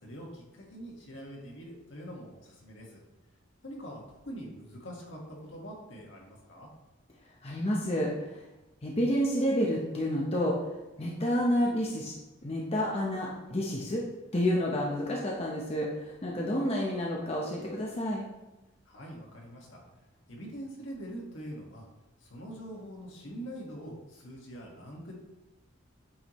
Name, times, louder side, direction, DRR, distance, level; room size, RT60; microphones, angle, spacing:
voice 1, 0.0-3.0 3.6-6.7 18.8-19.8 20.3-21.8 22.2-25.2, equal, 70° left, -2 dB, 1.7 m, -44 dB
voice 2, 7.4-8.4 8.8-10.6 11.0-12.1 12.4-14.0 14.3-18.3, equal, 30° left, -3 dB, 0.8 m, -29 dB
8.8 x 4.7 x 3.1 m, 1.0 s
head